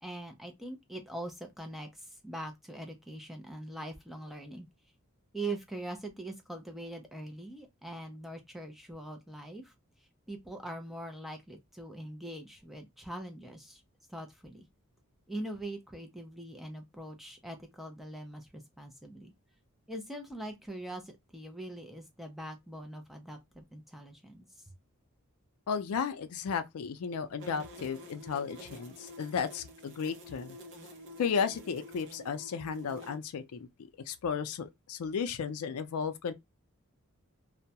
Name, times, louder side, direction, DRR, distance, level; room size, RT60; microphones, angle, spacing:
voice 1, 0.0-4.7 5.3-9.7 10.3-13.8 14.1-14.7 15.3-19.3 19.9-24.6, right 1 dB, ahead, 0.4 m, -42 dB
voice 2, 25.7-30.6 31.2-33.7 34.1-36.3, left 6 dB, 80° left, 0.4 m, -34 dB
sound 1, 27.4-33.1, equal, 55° right, 0.6 m, -49 dB
2.2 x 2.0 x 2.7 m
head